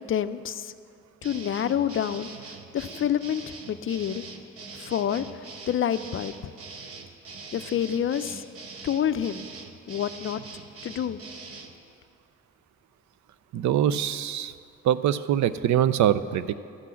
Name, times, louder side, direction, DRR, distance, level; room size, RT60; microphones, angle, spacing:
voice 1, 0.1-0.7 1.2-2.3 2.7-4.2 4.8-5.3 5.7-6.3 7.5-8.4 8.8-9.5 9.9-10.4 10.8-11.2, left 9 dB, 45° left, 13 dB, 0.5 m, -27 dB
sound 1, 1.2-11.7, right 4 dB, 50° right, 1.1 m, -43 dB
voice 2, 13.5-14.5 14.8-16.5, right 10 dB, 70° right, 14 dB, 0.5 m, -23 dB
12.0 x 6.1 x 8.3 m, 2.4 s
cardioid pair, 90°, 30 cm